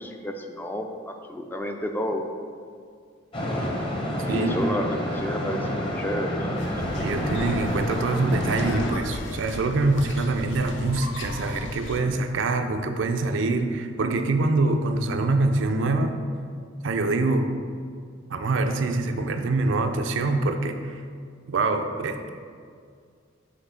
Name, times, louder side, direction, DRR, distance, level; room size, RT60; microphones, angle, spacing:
voice 1, 0.0-2.3 4.2-6.9, equal, 10° left, 4 dB, 0.3 m, -31 dB
sound 1, 3.3-8.9, equal, 25° left, 0.8 m, -29 dB
sound 2, 6.6-12.0, left 2 dB, 70° left, 0.5 m, -36 dB
voice 2, 7.0-16.1 16.8-17.5 18.3-21.0 21.5-22.3, right 3 dB, 75° right, 6 dB, 0.5 m, -25 dB
5.8 x 3.1 x 5.6 m, 2.2 s
head